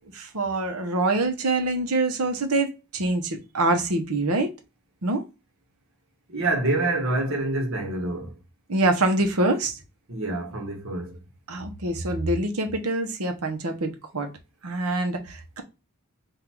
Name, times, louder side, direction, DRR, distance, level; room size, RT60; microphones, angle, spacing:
voice 1, 0.1-4.5 5.0-5.2 8.7-9.8 11.5-14.3 14.6-15.6, right 2 dB, 80° right, 1.0 m, -25 dB
voice 2, 6.3-8.3 10.1-11.2, right 2 dB, 65° right, 1.4 m, -26 dB
3.9 x 2.6 x 4.5 m
head